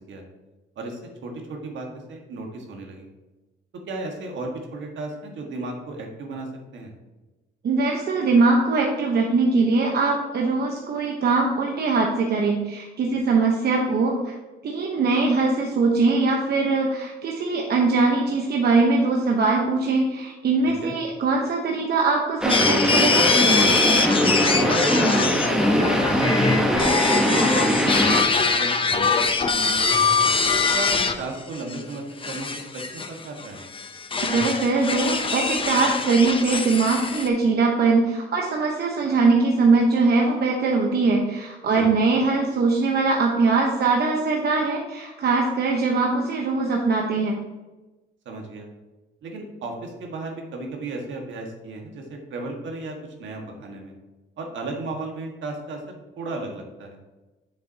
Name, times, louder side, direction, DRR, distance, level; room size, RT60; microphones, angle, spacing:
voice 1, 0.8-3.1 3.9-6.5 6.7-6.9 20.7-20.9 24.2-27.1 27.6-29.9 30.7-32.5 32.9-33.6 41.7-41.9 48.2-48.7 49.2-53.9 54.4-55.8 56.2-57.0, right 2 dB, 70° right, 2 dB, 1.5 m, -35 dB
voice 2, 7.6-14.3 14.6-23.3 34.2-47.4, right 3 dB, 55° right, 1 dB, 0.9 m, -21 dB
sound 1, 22.4-28.2, equal, 5° right, 1.0 m, -21 dB
sound 2, 22.5-31.1 31.5-31.8 32.2-37.3, left 4 dB, 25° left, 0.7 m, -23 dB
7.5 x 7.0 x 2.8 m, 1.1 s
cardioid pair, 90°, 20 cm